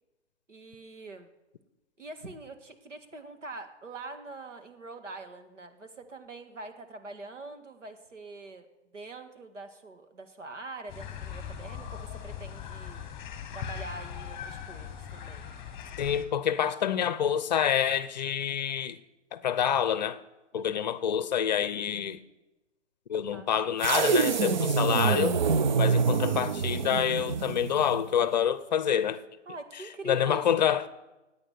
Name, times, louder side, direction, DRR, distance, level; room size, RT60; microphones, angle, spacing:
voice 1, 0.5-1.3 2.0-8.7 8.9-13.0 13.5-15.5 20.5-20.9 23.3-23.5 29.5-30.6, right 3 dB, 85° right, 2.1 m, -44 dB
sound 1, 10.9-16.3, left 8 dB, 15° left, 1.4 m, -40 dB
voice 2, 16.0-19.0 19.3-20.2 20.5-22.2 23.1-25.4 25.8-29.2 30.0-30.9, left 9 dB, 35° left, 0.7 m, -27 dB
sound 2, 23.8-28.1, right 5 dB, 40° right, 0.5 m, -26 dB
11.0 x 8.7 x 9.5 m
hypercardioid pair, 140°, 36 cm